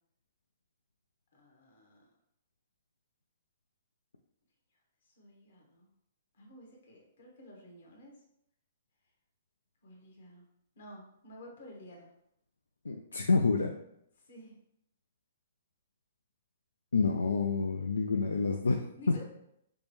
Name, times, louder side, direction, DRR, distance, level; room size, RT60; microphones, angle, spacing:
voice 1, 1.3-2.1 5.1-5.9 6.3-8.2 9.8-10.5 10.7-12.1 14.2-14.6 19.0-19.2, left 1 dB, 70° left, 0 dB, 1.3 m, -52 dB
voice 2, 12.8-13.7 16.9-19.2, left 4 dB, 90° left, 4 dB, 0.3 m, -28 dB
5.2 x 2.2 x 3.1 m, 0.75 s
hypercardioid pair, 130°, 0 cm